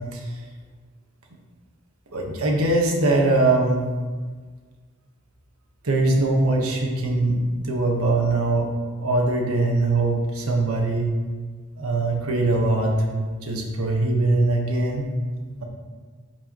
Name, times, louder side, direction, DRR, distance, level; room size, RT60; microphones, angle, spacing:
voice 1, 2.1-3.8 5.8-8.7 9.0-11.1 11.8-15.1, right 2 dB, 80° right, 0 dB, 1.4 m, -22 dB
12.5 x 4.6 x 3.0 m, 1.5 s
head